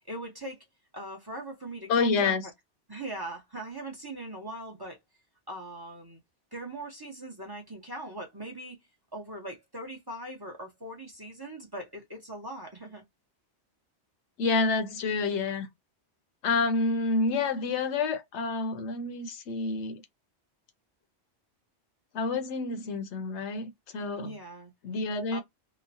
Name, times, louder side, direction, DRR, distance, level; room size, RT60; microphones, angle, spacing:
voice 1, 0.1-0.6 0.9-2.3 2.9-5.0 5.5-6.2 6.5-8.8 9.1-13.0 24.2-24.7 25.3-25.4, right 1 dB, 25° right, 0.7 m, -40 dB
voice 2, 1.9-2.5 14.4-15.7 16.4-20.0 22.1-24.4 24.8-25.4, left 3 dB, 85° left, 1.0 m, -28 dB
3.0 x 2.1 x 2.6 m
omnidirectional pair, 1.1 m